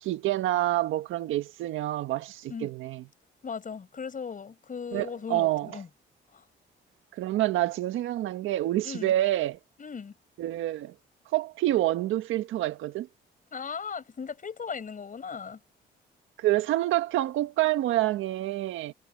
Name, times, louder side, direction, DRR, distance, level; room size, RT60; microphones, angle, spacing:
voice 1, 0.0-3.0 4.9-5.8 7.2-9.6 10.4-10.9 11.3-13.1 16.4-18.9, right 15 dB, 85° right, 1.6 m, -27 dB
voice 2, 3.4-5.9 6.3-6.5 8.8-9.1 9.8-10.1 13.5-15.6, left 6 dB, 40° left, 6.6 m, -37 dB
cardioid pair, 90°, 20 cm